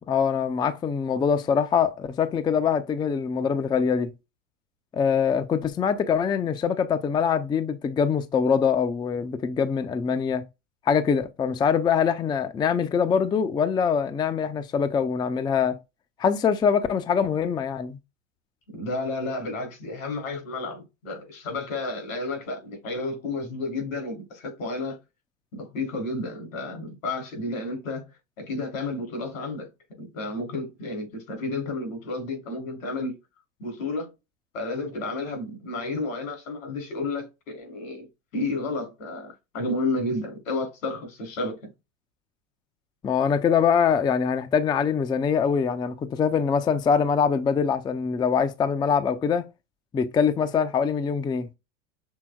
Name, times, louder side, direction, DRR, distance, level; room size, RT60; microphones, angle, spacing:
voice 1, 0.1-4.1 4.9-10.4 10.9-15.8 16.2-18.0 43.0-49.5 49.9-51.5, left 6 dB, 10° left, 0.4 m, -23 dB
voice 2, 18.7-25.0 25.5-28.1 28.4-29.7 30.0-33.2 33.6-34.1 34.5-38.1 38.3-41.7, left 2 dB, 80° left, 3.1 m, -31 dB
6.2 x 3.4 x 2.2 m
hypercardioid pair, 100°, 39 cm